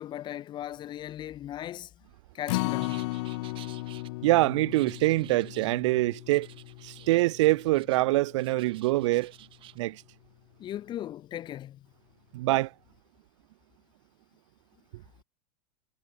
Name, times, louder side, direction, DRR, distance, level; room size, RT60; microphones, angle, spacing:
voice 1, 0.0-1.9 2.3-3.1 10.6-11.9, left 12 dB, 25° left, 2.5 m, -38 dB
Acoustic guitar, 2.5-8.8 9.2-9.3 9.7-9.8, left 22 dB, 50° left, 0.9 m, -36 dB
sound 1, 2.8-4.1 4.7-5.8 6.3-8.0 8.3-9.8, right 14 dB, 30° right, 4.9 m, -52 dB
voice 2, 4.2-6.5 6.8-9.3 9.8-10.0 12.3-12.7, right 19 dB, 55° right, 0.4 m, -24 dB
supercardioid pair, 155°, 19 cm